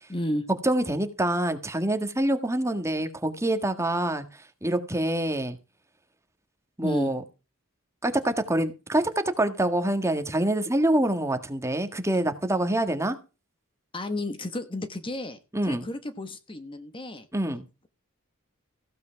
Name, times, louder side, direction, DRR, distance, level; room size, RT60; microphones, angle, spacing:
voice 1, 0.1-0.5 6.8-7.1 13.9-17.3, left 1 dB, 25° left, 1.2 m, -32 dB
voice 2, 0.6-5.6 6.8-7.2 8.0-13.2 15.5-15.9 17.3-17.7, right 1 dB, 15° right, 1.7 m, -26 dB
15.5 x 8.3 x 4.6 m
head